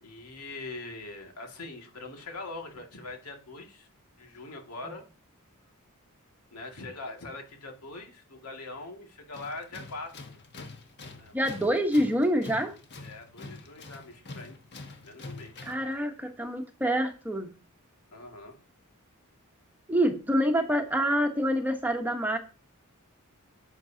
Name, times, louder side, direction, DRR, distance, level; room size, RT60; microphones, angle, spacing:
voice 1, 0.0-3.9 4.2-5.0 6.5-10.4 11.1-11.3 13.0-14.5 15.0-15.7 18.1-18.6, left 2 dB, 90° left, 2 dB, 2.2 m, -42 dB
Tools, 9.3-15.9, left 3 dB, 50° left, 1.4 m, -45 dB
voice 2, 11.3-12.7 15.6-17.5 19.9-22.4, equal, 10° right, 4 dB, 1.1 m, -26 dB
10.5 x 8.0 x 2.8 m, 0.33 s
head